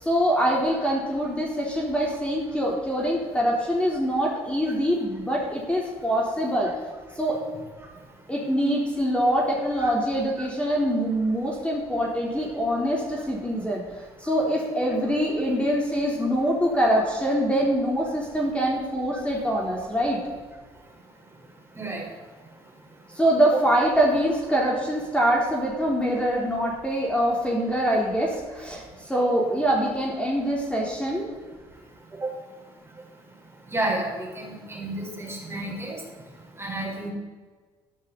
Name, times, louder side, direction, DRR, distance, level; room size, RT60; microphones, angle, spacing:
voice 1, 0.0-6.7 7.2-7.4 8.3-20.2 23.1-31.3, equal, 10° left, -3 dB, 3.8 m, -24 dB
voice 2, 33.7-36.0 36.6-37.1, right 2 dB, 20° right, -1 dB, 4.8 m, -31 dB
13.0 x 12.5 x 4.2 m, 1.4 s
supercardioid pair, 65°, 12 cm